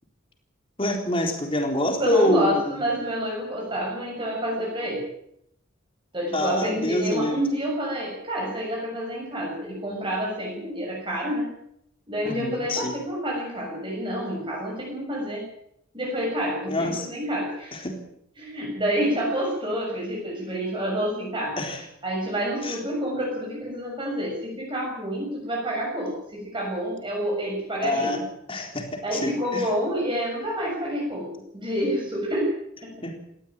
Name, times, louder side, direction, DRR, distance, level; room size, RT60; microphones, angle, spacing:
voice 1, 0.8-2.8 6.3-7.4 12.3-12.9 16.7-17.1 17.7-18.0 21.6-21.8 22.6-22.8 27.8-28.2 28.5-29.7 33.0-33.2, left 1 dB, 25° left, 3 dB, 3.9 m, -26 dB
voice 2, 2.0-5.0 6.1-11.5 12.1-15.4 15.9-17.7 18.4-21.6 22.0-28.2 29.0-32.5 32.8-32.9, equal, 25° right, -2 dB, 7.0 m, -28 dB
19.0 x 15.5 x 8.9 m, 0.76 s
head